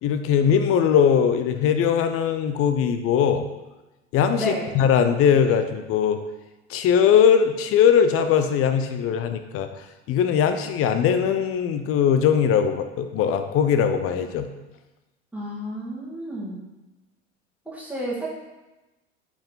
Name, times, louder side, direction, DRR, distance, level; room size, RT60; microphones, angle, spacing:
voice 1, 0.0-3.5 4.1-6.2 6.7-9.7 10.1-14.5, left 8 dB, 40° left, 8 dB, 0.9 m, -20 dB
voice 2, 4.4-4.7 15.3-16.6 17.7-18.4, right 1 dB, 5° right, -6 dB, 2.3 m, -31 dB
8.7 x 5.0 x 4.0 m, 1.1 s
figure-of-eight pair, 75°, 35 cm